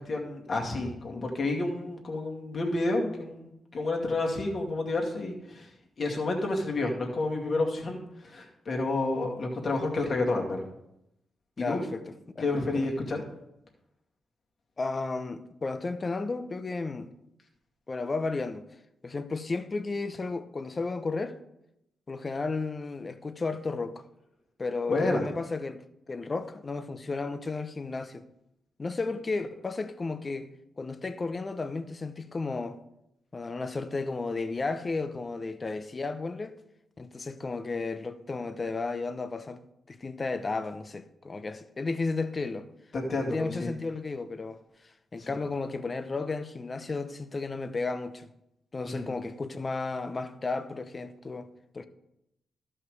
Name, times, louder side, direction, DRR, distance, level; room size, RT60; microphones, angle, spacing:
voice 1, 0.0-5.7 6.0-10.6 11.6-11.8 12.4-13.2 24.9-25.3 42.9-43.7 45.2-45.3 48.8-48.9, left 2 dB, 50° left, 2.3 m, -30 dB
voice 2, 11.6-12.5 12.7-12.9 14.8-17.1 17.9-18.7 19.0-21.4 22.1-24.0 24.6-28.3 28.8-30.5 30.8-32.8 33.3-36.6 37.0-39.6 39.9-42.7 43.2-48.3 48.7-51.5 51.7-51.9, left 3 dB, 35° left, 0.8 m, -33 dB
13.0 x 5.6 x 4.9 m
cardioid pair, 75°, 0 cm